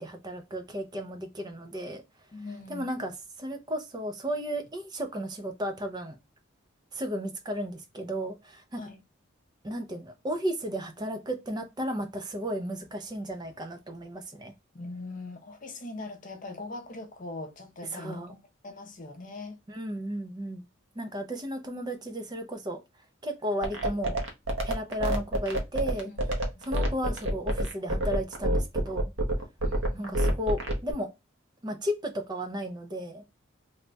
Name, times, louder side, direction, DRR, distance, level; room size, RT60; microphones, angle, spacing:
voice 1, 0.0-2.0 2.7-6.2 6.9-8.9 9.6-14.5 17.9-18.3 19.7-20.6 21.0-22.8 23.2-24.2 24.6-26.3 26.6-29.1 30.0-31.1 31.6-33.2, equal, 20° right, 0.5 m, -34 dB
voice 2, 2.3-2.9 8.8-9.0 14.7-19.6 29.6-30.2, left 2 dB, 40° left, 0.7 m, -41 dB
sound 1, 23.6-30.9, right 1 dB, 75° right, 0.9 m, -27 dB
3.3 x 2.2 x 3.8 m
head